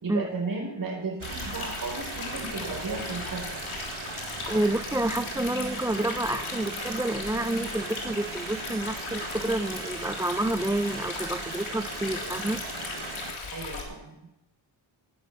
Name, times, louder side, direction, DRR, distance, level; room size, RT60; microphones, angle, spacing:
voice 1, 0.0-3.6 13.5-14.3, right 3 dB, 45° right, 0 dB, 4.9 m, -34 dB
Stream, 1.2-13.8, left 4 dB, 85° left, 3.5 m, -37 dB
sound 1, 1.2-13.3, right 8 dB, 80° right, 1.2 m, -40 dB
voice 2, 4.4-12.6, right 1 dB, 5° right, 11 dB, 0.4 m, -29 dB
19.5 x 6.6 x 6.8 m, 0.88 s
cardioid pair, 80°, 47 cm